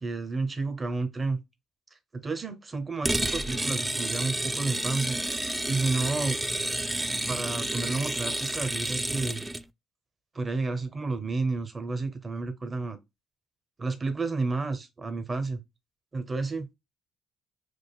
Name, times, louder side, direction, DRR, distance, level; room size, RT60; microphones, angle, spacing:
voice 1, 0.0-1.4 2.1-5.2 5.7-6.4 7.3-9.4 10.3-13.0 13.8-15.6 16.1-16.7, right 3 dB, 30° right, 0.7 m, -31 dB
sound 1, 3.0-9.6, right 1 dB, 10° right, 0.3 m, -30 dB
4.8 x 2.5 x 2.2 m
supercardioid pair, 70°, 0 cm